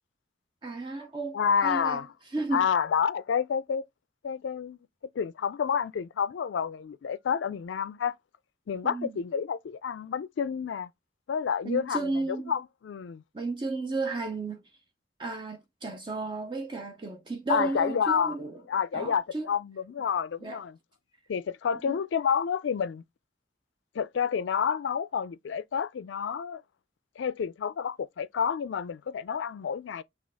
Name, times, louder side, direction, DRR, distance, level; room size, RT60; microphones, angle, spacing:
voice 1, 0.6-2.0 2.3-2.7 8.8-9.1 11.6-12.5 13.3-14.6 15.2-18.6 18.9-19.5 20.4-20.6 21.8-22.0, right 3 dB, 25° right, 0.5 m, -33 dB
voice 2, 1.3-2.1 2.5-3.8 4.2-4.8 5.2-8.2 8.7-10.9 11.3-13.2 17.5-18.4 18.7-20.8 21.3-23.0 23.9-26.6 27.2-30.0, left 7 dB, 90° left, 0.4 m, -29 dB
6.2 x 2.4 x 3.4 m
head